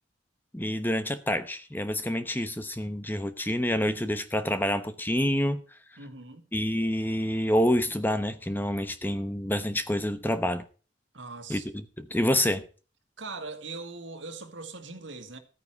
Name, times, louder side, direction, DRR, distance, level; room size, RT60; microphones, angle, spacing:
voice 1, 0.5-5.6 6.5-10.6 11.5-12.6, left 1 dB, 10° left, 0.9 m, -27 dB
voice 2, 6.0-6.4 11.1-11.7 13.2-15.4, right 3 dB, 75° right, 2.1 m, -40 dB
13.5 x 9.6 x 4.7 m
head